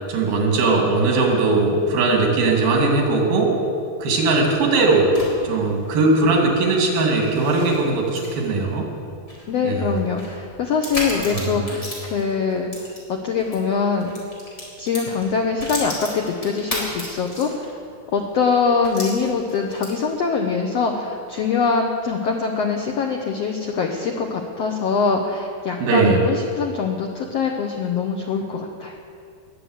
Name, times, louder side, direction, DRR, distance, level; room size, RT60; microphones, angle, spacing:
voice 1, 0.1-3.5 4.0-5.1 5.4-8.9 9.6-9.9 11.2-11.7 25.8-26.2, right 3 dB, 80° right, 0 dB, 4.4 m, -19 dB
sound 1, 4.6-13.6 13.9-17.8 18.2-18.3 18.8-20.2, left 1 dB, 20° left, 4.1 m, -35 dB
voice 2, 9.5-14.1 14.8-17.7 18.1-29.0, left 5 dB, 80° left, 2 dB, 1.4 m, -23 dB
20.5 x 8.0 x 8.0 m, 2.4 s
omnidirectional pair, 4.2 m